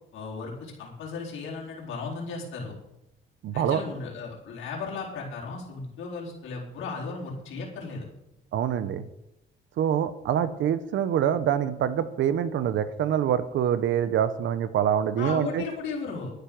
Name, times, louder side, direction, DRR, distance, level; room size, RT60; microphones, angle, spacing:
voice 1, 0.1-2.7 3.5-8.1 15.2-16.3, left 4 dB, 85° left, -4 dB, 4.3 m, -35 dB
voice 2, 3.4-3.8 8.5-9.1 9.8-15.6, right 9 dB, 75° right, 13 dB, 0.9 m, -25 dB
12.0 x 10.5 x 6.1 m, 0.85 s
cardioid pair, 90°, 20 cm